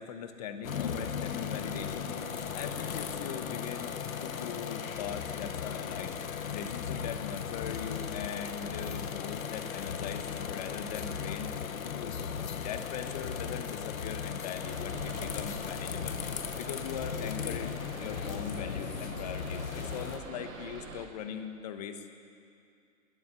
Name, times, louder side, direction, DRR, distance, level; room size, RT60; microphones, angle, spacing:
voice 1, 0.0-2.1 2.5-6.2 6.5-11.5 11.9-12.1 12.5-16.2 16.6-22.1, left 8 dB, 30° left, 8 dB, 1.3 m, -41 dB
sound 1, 0.6-20.2, left 7 dB, 85° left, 1.6 m, -37 dB
sound 2, 14.6-21.1, right 3 dB, 85° right, 4.5 m, -45 dB
20.0 x 13.5 x 9.7 m, 2.4 s
hypercardioid pair, 170°, 40 cm